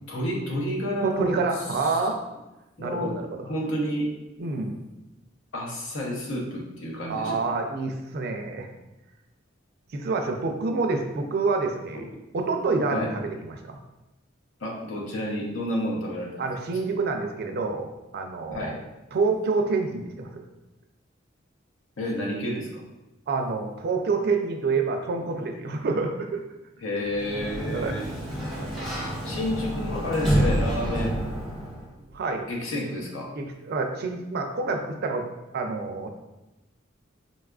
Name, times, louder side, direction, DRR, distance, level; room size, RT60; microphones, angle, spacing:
voice 1, 0.1-1.3 1.8-2.0 2.8-3.1 3.4-4.1 5.5-7.4 12.9-13.1 14.6-16.4 18.5-18.8 22.0-22.8 26.8-28.1 29.2-31.2 32.5-33.3, left 1 dB, 85° left, -2 dB, 0.7 m, -30 dB
voice 2, 1.0-2.2 2.8-3.4 4.4-4.8 7.1-8.7 9.9-12.1 12.3-13.8 16.4-18.7 19.1-20.4 23.3-26.4 27.7-28.0 28.6-28.9 32.1-32.4 33.4-35.3 35.5-36.1, right 4 dB, 55° right, 4 dB, 0.4 m, -27 dB
Sliding door, 27.0-31.9, right 1 dB, ahead, 0.6 m, -28 dB
4.0 x 2.3 x 2.3 m, 0.99 s
head